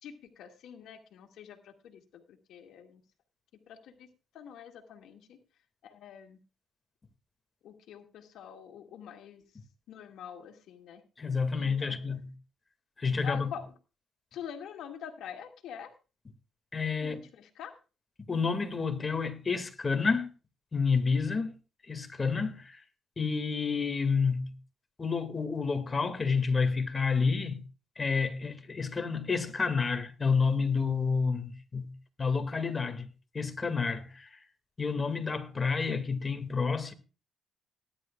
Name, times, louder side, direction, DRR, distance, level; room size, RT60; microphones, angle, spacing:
voice 1, 0.0-3.0 3.7-4.1 4.3-5.4 5.8-6.4 7.6-9.4 9.9-11.0 11.5-12.0 13.2-13.7 14.3-15.9 17.0-17.8, left 8 dB, 80° left, 2.1 m, -45 dB
voice 2, 11.2-12.3 13.0-13.5 16.7-17.2 18.3-20.3 20.7-21.5 21.9-22.8 23.2-24.5 25.0-27.6 28.0-31.9 32.2-33.1 33.3-34.4 34.8-36.9, left 5 dB, 30° left, 2.2 m, -29 dB
19.0 x 10.5 x 2.4 m
cardioid pair, 90°, 0 cm